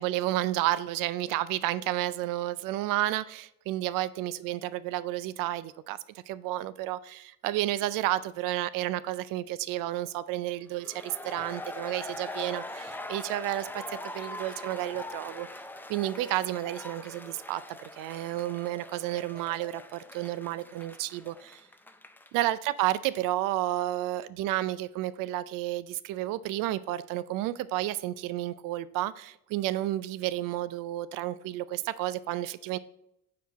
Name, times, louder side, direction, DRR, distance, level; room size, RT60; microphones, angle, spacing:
voice 1, 0.0-6.0 6.3-15.5 15.9-21.6 22.3-32.8, right 15 dB, 80° right, 0.5 m, -31 dB
sound 1, 10.8-22.4, left 2 dB, 5° left, 0.5 m, -42 dB
5.9 x 4.7 x 4.0 m
supercardioid pair, 80°, 32 cm